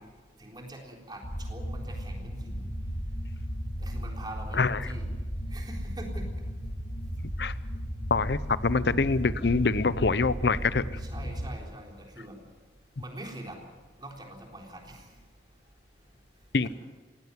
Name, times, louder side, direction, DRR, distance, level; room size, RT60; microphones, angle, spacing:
voice 1, 0.4-2.7 3.8-5.0 5.5-6.2 11.0-12.4 13.0-13.6 14.0-15.0 16.6-16.7, right 1 dB, 25° right, 1 dB, 3.8 m, -43 dB
sound 1, 1.2-11.5, equal, 45° left, 1.8 m, -35 dB
voice 2, 8.1-10.8 16.5-16.7, left 4 dB, 70° left, 16 dB, 0.7 m, -25 dB
19.0 x 16.5 x 9.7 m, 1.4 s
head